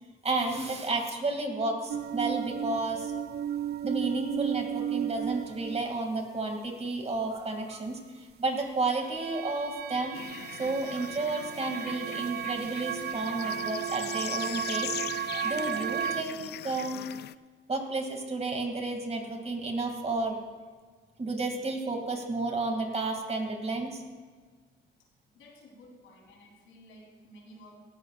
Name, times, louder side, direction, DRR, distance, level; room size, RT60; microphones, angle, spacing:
voice 1, 0.2-3.1 3.8-10.2 10.5-17.0 17.7-20.4 21.2-24.0, right 3 dB, 30° right, 3 dB, 2.4 m, -32 dB
sound 1, 1.9-5.9 9.2-16.2, right 9 dB, 55° right, 0.5 m, -34 dB
sound 2, 10.1-17.3, left 12 dB, 55° left, 0.4 m, -41 dB
voice 2, 25.3-27.8, equal, 85° left, -1 dB, 3.6 m, -53 dB
18.0 x 14.5 x 2.5 m, 1.5 s
cardioid pair, 90°, 20 cm